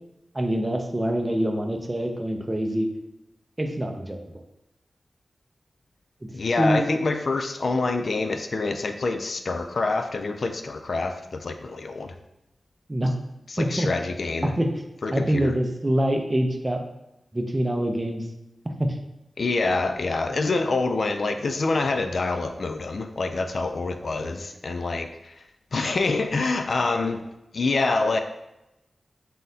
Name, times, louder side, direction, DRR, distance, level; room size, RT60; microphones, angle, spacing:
voice 1, 0.3-2.9 3.6-4.4 6.6-6.9 12.9-13.1 13.6-13.9 14.6-14.7 15.1-16.8 17.3-18.3 18.8-19.0 24.2-24.4 27.0-27.1, right 1 dB, 20° right, 4 dB, 0.5 m, -25 dB
voice 2, 6.3-12.2 13.5-14.5 15.0-15.6 19.4-25.4 25.7-27.2 27.5-28.2, left 3 dB, 60° left, 7 dB, 0.3 m, -26 dB
3.9 x 3.7 x 2.7 m, 0.93 s
wide cardioid pair, 95°, 0 cm